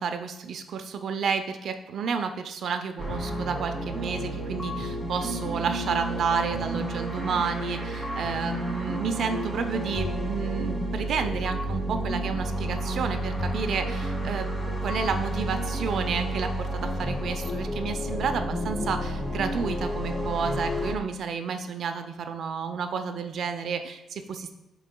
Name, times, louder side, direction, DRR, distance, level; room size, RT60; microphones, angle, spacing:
voice 1, 0.0-14.5 14.8-24.5, right 6 dB, 70° right, 7 dB, 0.6 m, -31 dB
sound 1, 3.0-20.9, right 1 dB, 10° left, 1.4 m, -31 dB
11.0 x 4.0 x 2.3 m, 0.97 s
cardioid pair, 80°, 0 cm